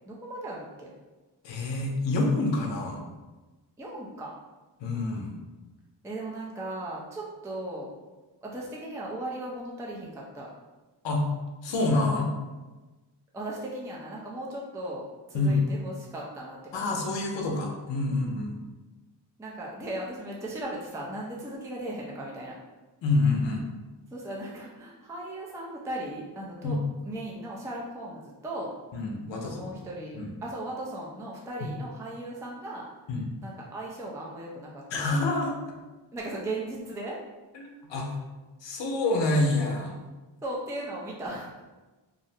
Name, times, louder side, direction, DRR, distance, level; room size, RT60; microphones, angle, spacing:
voice 1, 0.1-0.9 3.8-4.4 6.0-7.9 8.4-10.5 13.3-15.0 15.3-17.0 18.1-18.3 19.4-22.6 24.1-26.8 27.0-28.7 29.4-32.8 33.4-35.0 36.1-37.2 40.4-41.5, right 1 dB, 5° right, -4 dB, 0.4 m, -37 dB
voice 2, 1.4-3.0 4.8-5.4 11.0-11.3 11.6-12.3 15.3-15.6 16.7-18.6 23.0-23.6 26.6-26.8 28.9-29.7 30.2-30.3 33.1-33.3 34.9-35.8 37.5-38.2 38.6-40.1, left 2 dB, 75° left, 1 dB, 0.6 m, -27 dB
2.5 x 2.0 x 2.7 m, 1.2 s
cardioid pair, 70°, 45 cm